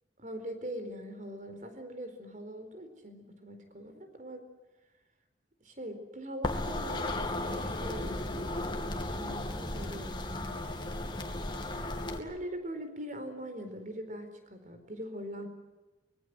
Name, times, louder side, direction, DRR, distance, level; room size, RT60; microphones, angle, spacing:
voice 1, 0.2-4.5 5.6-10.6 11.0-11.1 11.5-11.9 12.1-15.5, equal, 45° right, 8 dB, 4.4 m, -42 dB
sound 1, 6.4-12.2, left 1 dB, 25° left, 2.5 m, -35 dB
25.0 x 21.5 x 7.9 m, 1.1 s
head